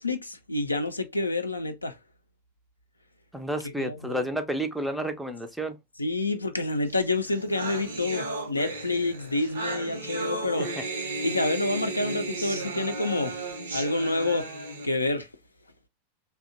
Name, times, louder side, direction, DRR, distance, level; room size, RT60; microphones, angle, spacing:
voice 1, 0.0-2.0 3.8-4.3 6.0-10.7 11.2-13.4 13.7-14.5 14.8-15.3, left 2 dB, 80° left, 0.4 m, -28 dB
voice 2, 3.3-5.8 10.6-10.8, right 1 dB, ahead, 0.4 m, -31 dB
sound 1, 7.0-7.1 7.3-14.9, right 2 dB, 70° right, 0.6 m, -34 dB
2.7 x 2.1 x 2.5 m
figure-of-eight pair, 90°, 0 cm